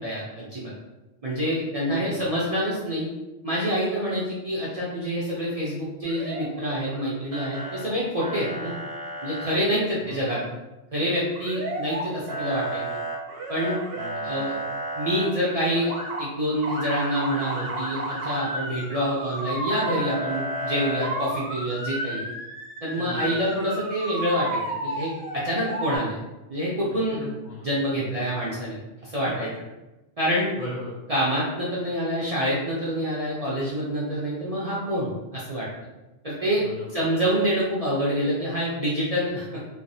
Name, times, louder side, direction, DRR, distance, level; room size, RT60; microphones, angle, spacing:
voice 1, 0.0-0.7 1.2-3.1 3.4-8.7 9.2-10.4 10.9-12.8 13.5-13.7 14.2-14.6 15.0-15.9 16.2-22.2 22.8-26.2 26.5-27.2 27.6-29.5 30.2-30.5 31.1-35.7 36.2-36.6 36.9-39.4, equal, 50° right, -7 dB, 0.4 m, -27 dB
voice 2, 1.9-2.5 9.9-10.5 14.0-14.6 23.0-23.5 27.1-28.3 29.3-29.5 30.6-31.0 36.5-37.2, left 2 dB, 65° left, -4 dB, 0.4 m, -39 dB
Motor vehicle (road) / Siren, 6.0-7.0 7.3-7.8 8.2-9.5 11.4-12.0 12.3-15.3 15.7-16.2 16.6-26.0, right 1 dB, 75° right, 1.1 m, -32 dB
3.1 x 2.0 x 2.6 m, 1.0 s
omnidirectional pair, 1.3 m